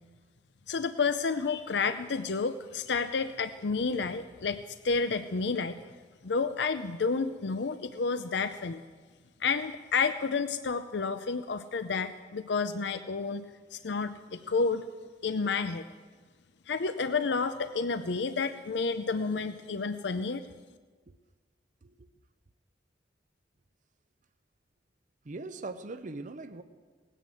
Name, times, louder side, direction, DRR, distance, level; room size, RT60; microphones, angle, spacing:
voice 1, 0.7-5.8 6.2-8.8 9.4-13.4 13.7-14.9 15.2-15.8 16.7-20.4, left 4 dB, 70° left, 0.6 m, -30 dB
voice 2, 25.2-26.6, right 3 dB, 45° right, 0.7 m, -41 dB
18.0 x 10.0 x 7.7 m
head